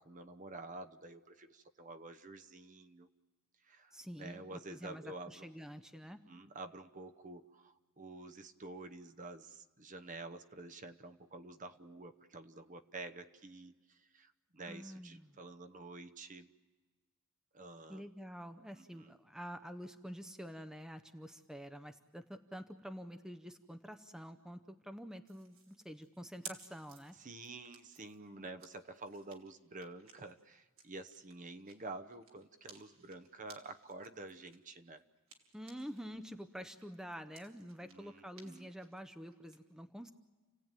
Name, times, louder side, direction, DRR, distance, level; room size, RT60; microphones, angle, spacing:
voice 1, 0.0-3.1 3.6-5.5 6.3-16.5 17.5-18.0 18.7-19.1 27.2-35.0 37.8-38.7, right 2 dB, 35° right, 9 dB, 0.9 m, -49 dB
voice 2, 3.9-6.2 14.6-15.4 17.9-27.1 35.5-40.1, equal, 5° right, 9 dB, 0.7 m, -48 dB
sound 1, 25.3-36.1 36.4-39.6, right 5 dB, 75° right, 2.9 m, -58 dB
30.0 x 17.0 x 9.0 m, 1.3 s
head